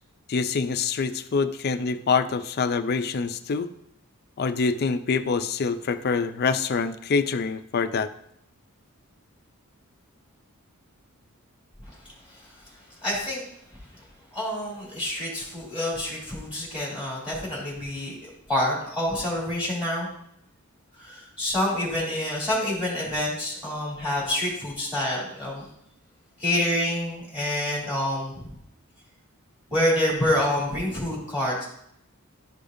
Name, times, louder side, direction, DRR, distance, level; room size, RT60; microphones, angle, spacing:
voice 1, 0.3-3.7 4.4-8.1, left 5 dB, 45° left, 10 dB, 0.4 m, -25 dB
voice 2, 12.3-12.6 13.0-13.4 13.9-14.1 14.3-20.1 21.0-25.7 26.4-28.5 29.7-31.6, left 1 dB, 5° right, -6 dB, 2.6 m, -27 dB
11.5 x 5.0 x 2.6 m, 0.73 s
head